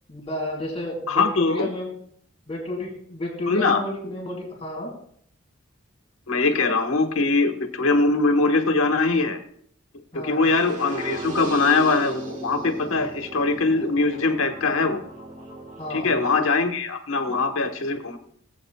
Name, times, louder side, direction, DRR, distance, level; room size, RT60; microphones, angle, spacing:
voice 1, 0.1-2.0 2.5-4.9 10.1-10.5 15.8-16.2, left 1 dB, 30° left, -3 dB, 4.3 m, -31 dB
voice 2, 1.1-1.7 3.5-3.8 6.3-9.4 10.1-15.0 15.9-18.2, left 3 dB, 90° left, 6 dB, 1.3 m, -22 dB
sound 1, 10.4-16.4, right 2 dB, 40° right, 1.4 m, -37 dB
20.0 x 8.1 x 2.3 m, 0.63 s
head